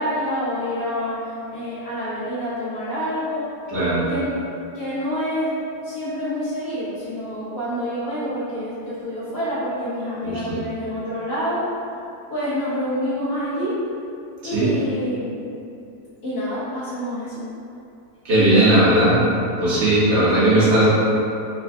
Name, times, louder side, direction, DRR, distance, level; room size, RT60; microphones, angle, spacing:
voice 1, 0.0-3.5 4.1-4.3 4.7-5.5 5.8-11.6 12.3-13.8 14.4-15.4 16.2-17.4 18.4-19.0, equal, 85° left, -11 dB, 2.0 m, -27 dB
voice 2, 3.7-4.1 10.2-10.6 14.4-14.8 18.2-19.3 19.6-20.9, right 1 dB, 45° right, -10 dB, 1.5 m, -17 dB
5.0 x 2.3 x 3.5 m, 2.6 s
omnidirectional pair, 1.7 m